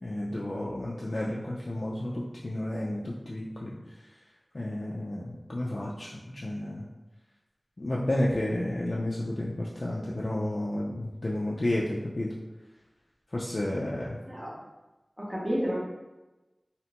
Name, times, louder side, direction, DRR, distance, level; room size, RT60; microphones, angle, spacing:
voice 1, 0.0-4.0 4.5-6.9 7.8-12.3 13.3-14.2, left 1 dB, 55° left, -5 dB, 0.3 m, -31 dB
voice 2, 15.2-15.7, equal, 25° right, -5 dB, 0.7 m, -30 dB
2.7 x 2.1 x 2.9 m, 1.1 s
wide cardioid pair, 60°, 0 cm